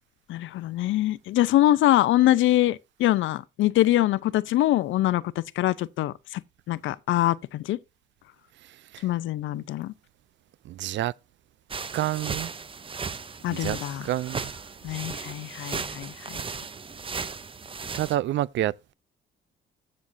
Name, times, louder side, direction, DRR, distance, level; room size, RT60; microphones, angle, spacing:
voice 1, 0.3-6.4 6.7-7.8 9.0-9.9 13.4-14.1 14.8-16.4, left 14 dB, 80° left, 0.6 m, -24 dB
voice 2, 8.6-9.1 10.6-11.1 11.9-12.5 13.5-13.8 14.0-14.5 17.9-18.9, right 14 dB, 65° right, 0.4 m, -28 dB
sound 1, 11.7-18.2, right 5 dB, 25° right, 0.7 m, -36 dB
14.5 x 6.4 x 2.6 m
cardioid pair, 90°, 20 cm